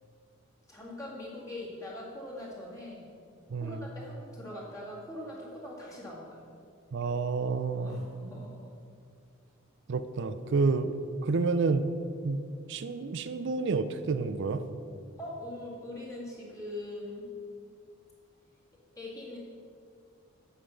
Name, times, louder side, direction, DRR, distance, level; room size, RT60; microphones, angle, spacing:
voice 1, 0.7-3.1 3.6-6.4 7.7-8.7 15.2-17.3 19.0-19.4, left 1 dB, 15° left, -6 dB, 2.0 m, -42 dB
voice 2, 3.5-3.9 6.9-8.0 9.9-11.0 11.2-11.9 12.2-14.6, right 4 dB, 55° right, 12 dB, 0.4 m, -29 dB
8.4 x 5.7 x 7.0 m, 2.3 s
head